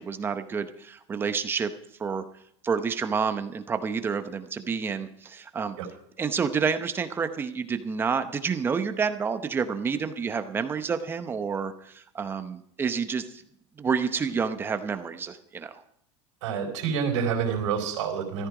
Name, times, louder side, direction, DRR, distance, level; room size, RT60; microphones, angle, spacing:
voice 1, 0.0-1.7 2.0-2.2 2.6-5.8 6.2-13.4 13.8-15.8, right 6 dB, 15° right, 9 dB, 0.8 m, -29 dB
voice 2, 16.4-18.5, right 6 dB, 90° right, 1 dB, 4.3 m, -28 dB
14.5 x 13.0 x 4.9 m, 0.69 s
supercardioid pair, 170°, 16 cm